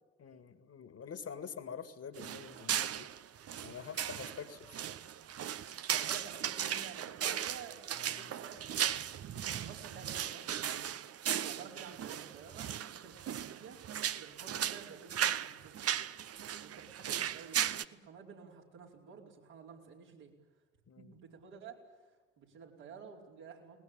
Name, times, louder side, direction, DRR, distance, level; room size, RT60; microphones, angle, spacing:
voice 1, 0.2-3.1 3.6-4.7 7.9-8.3 9.6-9.7 14.5-14.6 20.9-21.2, left 7 dB, 45° left, 10 dB, 2.3 m, -46 dB
sound 1, 2.2-17.8, right 10 dB, 45° right, 0.9 m, -37 dB
voice 2, 5.9-9.0 9.3-10.8 11.3-13.8 14.1-15.9 16.6-20.3 21.0-21.8 22.4-23.8, right 6 dB, 70° right, -2 dB, 4.8 m, -52 dB
21.5 x 20.0 x 9.0 m, 1.3 s
hypercardioid pair, 45°, 33 cm